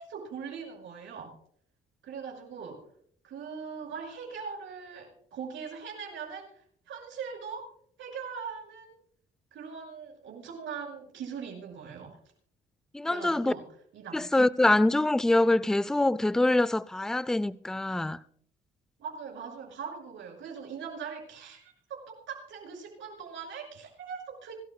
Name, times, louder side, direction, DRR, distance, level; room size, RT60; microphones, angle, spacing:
voice 1, 0.0-1.4 2.0-2.8 3.2-7.7 8.0-8.9 9.5-12.2 13.0-13.6 13.9-14.3 19.0-24.5, right 6 dB, 75° right, 5.9 m, -41 dB
voice 2, 12.9-13.5 14.1-18.2, left 2 dB, 5° left, 0.4 m, -24 dB
25.5 x 13.0 x 2.2 m
cardioid pair, 90°, 20 cm